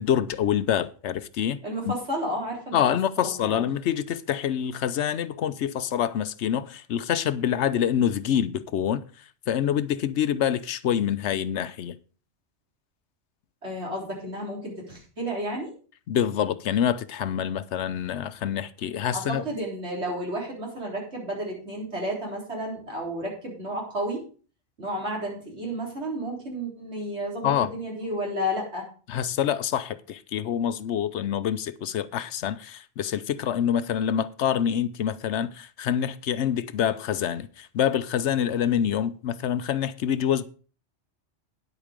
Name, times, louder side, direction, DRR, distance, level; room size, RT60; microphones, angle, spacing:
voice 1, 0.0-1.6 1.9-2.0 2.7-9.0 9.5-11.9 16.1-19.4 27.4-27.7 29.1-40.4, left 9 dB, 75° left, 0.9 m, -26 dB
voice 2, 1.6-2.8 3.2-3.6 13.6-15.7 19.0-24.2 24.8-28.9, equal, 65° right, 4.3 m, -32 dB
10.0 x 8.1 x 5.1 m
omnidirectional pair, 1.2 m